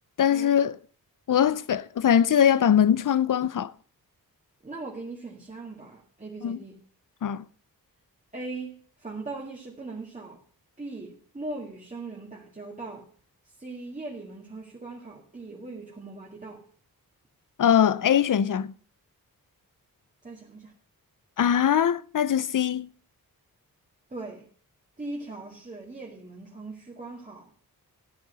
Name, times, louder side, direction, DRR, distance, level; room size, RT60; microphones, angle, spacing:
voice 1, 0.2-0.8 1.3-3.7 6.4-6.6 7.2-7.4 17.6-18.7 21.4-22.9, left 9 dB, 60° left, 0.6 m, -22 dB
voice 2, 1.3-1.6 4.6-6.8 8.3-10.4 10.8-13.1 13.6-16.7 20.2-20.7 24.1-24.5 25.0-27.5, right 3 dB, 20° right, 2.1 m, -39 dB
13.5 x 9.2 x 5.5 m
wide cardioid pair, 110°, 37 cm